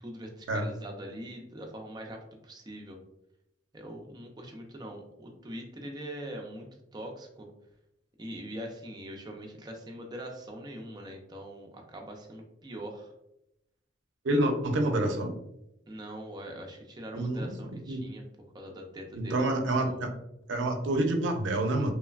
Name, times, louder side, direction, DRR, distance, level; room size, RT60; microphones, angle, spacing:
voice 1, 0.0-3.0 3.7-7.5 8.2-13.1 14.4-14.6 15.9-18.2 18.5-20.1, right 1 dB, 25° right, 2 dB, 0.4 m, -42 dB
voice 2, 14.2-15.3 17.1-17.5 17.9-18.0 19.1-20.1 20.5-21.9, right 1 dB, 90° right, 4 dB, 0.5 m, -27 dB
3.1 x 2.1 x 2.3 m, 0.83 s
head